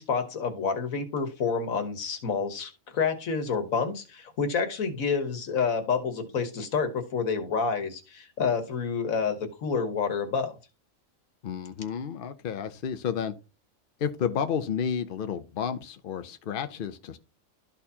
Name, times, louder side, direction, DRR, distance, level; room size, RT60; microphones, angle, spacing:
voice 1, 0.0-10.5, left 5 dB, 80° left, 7 dB, 1.6 m, -28 dB
voice 2, 11.4-13.3 14.0-17.2, left 7 dB, 55° left, 9 dB, 0.6 m, -31 dB
13.0 x 4.4 x 2.8 m, 0.32 s
omnidirectional pair, 1.4 m